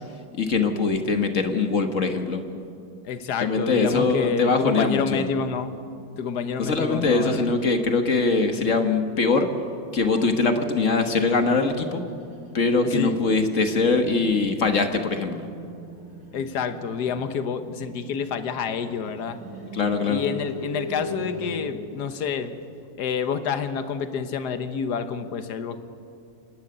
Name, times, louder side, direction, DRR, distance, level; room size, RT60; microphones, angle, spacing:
voice 1, 0.4-2.4 3.4-5.3 6.6-9.5 9.9-12.0 12.5-15.5 19.7-20.2, left 3 dB, 45° left, 6 dB, 1.5 m, -22 dB
voice 2, 3.0-5.7 6.2-7.5 12.8-13.2 16.3-19.4 20.1-22.5 23.0-25.8, left 6 dB, 60° left, 10 dB, 1.6 m, -28 dB
sound 1, 11.9-21.6, equal, 80° right, 3.9 m, -40 dB
27.0 x 11.5 x 9.8 m, 2.4 s
omnidirectional pair, 2.0 m